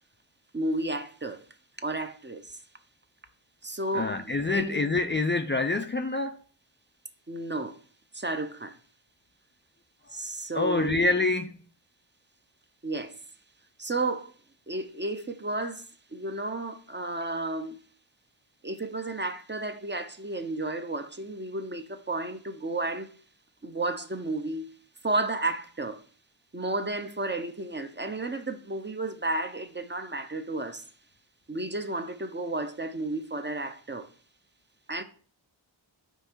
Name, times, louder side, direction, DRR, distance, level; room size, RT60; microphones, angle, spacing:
voice 1, 0.5-1.4 1.8-2.6 3.6-4.8 7.3-7.8 8.1-8.8 10.1-11.0 12.8-13.2 13.8-14.3 14.7-17.8 18.6-23.2 23.6-24.7 25.0-26.0 26.5-30.9 31.5-34.1 34.9-35.0, right 2 dB, 25° right, 0.6 m, -32 dB
voice 2, 3.9-6.4 10.5-11.6, left 3 dB, 25° left, 0.4 m, -26 dB
5.5 x 4.4 x 4.4 m
wide cardioid pair, 80°, 47 cm